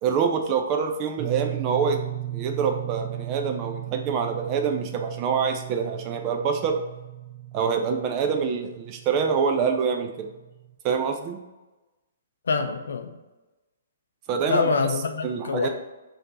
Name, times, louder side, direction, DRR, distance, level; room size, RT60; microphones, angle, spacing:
voice 1, 0.0-2.0 2.3-6.8 7.5-10.3 10.8-11.4 14.3-14.7 15.2-15.7, right 6 dB, 30° right, 4 dB, 0.4 m, -25 dB
sound 1, 1.2-10.7, right 14 dB, 5° right, 1.0 m, -36 dB
voice 2, 12.5-13.1 14.5-15.7, left 4 dB, 65° left, 6 dB, 0.5 m, -25 dB
4.2 x 2.8 x 4.1 m, 1.1 s
figure-of-eight pair, 120°, 0 cm